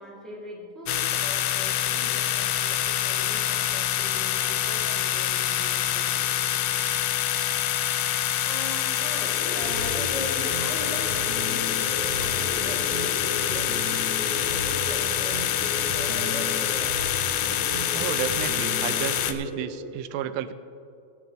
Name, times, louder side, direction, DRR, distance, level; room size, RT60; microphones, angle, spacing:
voice 1, 0.0-6.3 8.4-13.9 14.2-16.9, equal, ahead, -5 dB, 2.1 m, -40 dB
sound 1, 0.9-19.3, left 12 dB, 85° left, 2.3 m, -26 dB
sound 2, 9.3-19.9, left 1 dB, 55° left, 2.0 m, -37 dB
sound 3, 9.6-19.2, right 1 dB, 65° right, 1.9 m, -37 dB
voice 2, 17.9-20.5, right 10 dB, 85° right, 11 dB, 2.3 m, -32 dB
17.0 x 10.5 x 3.4 m, 2.5 s
omnidirectional pair, 4.0 m